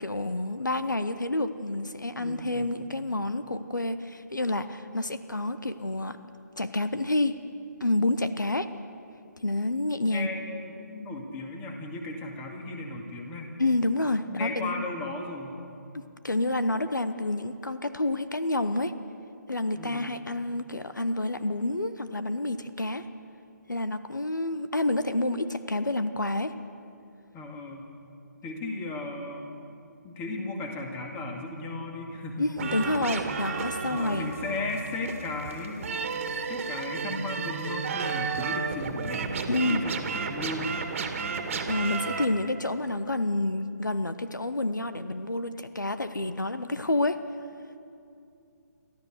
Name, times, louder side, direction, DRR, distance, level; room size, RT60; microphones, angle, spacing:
voice 1, 0.0-6.2 6.6-7.4 7.8-8.7 9.4-10.3 13.6-14.8 16.2-18.9 19.5-23.0 23.7-26.5 32.4-34.3 39.5-39.8 41.7-47.2, left 2 dB, 90° left, 11 dB, 1.0 m, -28 dB
voice 2, 2.2-2.7 10.0-13.5 14.3-15.6 19.8-20.2 27.3-27.9 28.4-29.5 30.0-32.5 33.9-39.3 39.7-40.7, left 2 dB, 15° left, 2 dB, 2.2 m, -36 dB
sound 1, 32.6-42.2, right 5 dB, 45° right, 1.9 m, -32 dB
29.5 x 13.5 x 6.5 m, 2.6 s
figure-of-eight pair, 145°, 10 cm